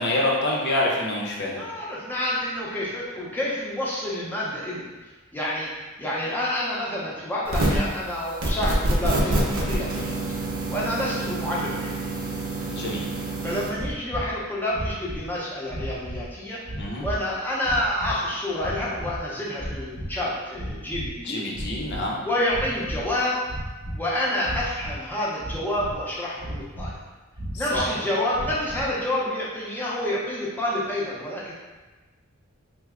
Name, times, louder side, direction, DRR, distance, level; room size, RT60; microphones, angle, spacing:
voice 1, 0.0-1.6 12.6-13.0 16.8-17.1 21.2-22.2 27.5-28.0, left 1 dB, 55° left, -2 dB, 0.6 m, -26 dB
voice 2, 1.5-4.8 5.3-5.7 6.0-10.2 10.7-12.1 13.4-16.6 17.0-21.4 22.2-23.4 23.9-26.9 27.5-31.5, left 1 dB, 10° left, -6 dB, 0.6 m, -28 dB
sound 1, 7.5-7.9 8.4-13.7, right 2 dB, 75° right, 0.6 m, -27 dB
sound 2, 13.7-14.3 14.7-15.3 15.7-16.3 16.6-17.2 17.6-18.1 18.6-19.2 19.5-20.2 20.5-21.2 21.5-22.1 22.5-23.1 23.4-24.0 24.4-25.0 25.4-26.0 26.4-27.0 27.3-27.9 28.3-28.9, equal, 35° right, 0.9 m, -34 dB
3.2 x 2.0 x 3.5 m, 1.2 s
head